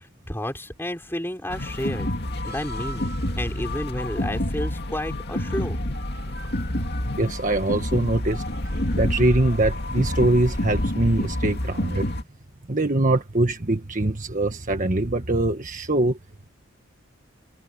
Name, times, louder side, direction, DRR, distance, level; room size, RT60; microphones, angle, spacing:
voice 1, 0.3-2.1 2.5-5.8, left 1 dB, 10° left, 5.4 m, -31 dB
sound 1, 1.5-12.2, left 1 dB, 50° left, 2.6 m, -28 dB
voice 2, 7.2-8.4 9.0-12.1 12.7-16.2, right 2 dB, 40° right, 1.5 m, -23 dB
head